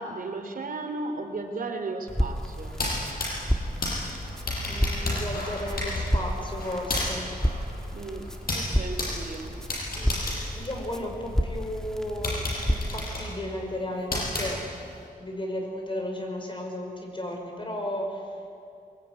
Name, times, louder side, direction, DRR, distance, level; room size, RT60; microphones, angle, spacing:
voice 1, 0.0-2.8 7.9-9.6, right 3 dB, 70° right, 5 dB, 3.0 m, -35 dB
Crackle, 2.1-13.0, equal, 5° left, 1.9 m, -31 dB
sound 1, 2.7-11.4 11.8-11.9 12.2-15.0, left 2 dB, 75° left, 7.7 m, -32 dB
voice 2, 4.6-7.3 9.9-10.3 10.5-14.7 15.2-18.3, left 1 dB, 35° left, 2 dB, 5.6 m, -34 dB
22.5 x 22.5 x 9.5 m, 2.5 s
wide cardioid pair, 110°, 15 cm